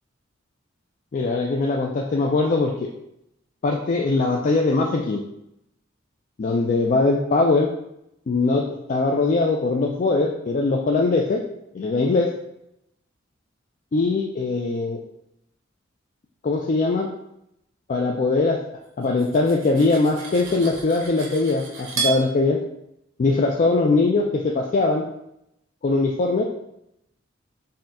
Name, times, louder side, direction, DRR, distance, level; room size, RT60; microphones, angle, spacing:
voice 1, 1.1-2.9 3.6-5.2 6.4-7.7 8.3-11.4 11.7-12.3 13.9-15.0 16.4-17.1 17.9-18.6 19.0-22.6 23.2-25.1 25.8-26.4, left 3 dB, 40° left, -1 dB, 0.4 m, -21 dB
Cutlery silverware, 19.0-22.2, right 5 dB, 80° right, 0.9 m, -32 dB
4.2 x 2.3 x 3.7 m, 0.81 s
head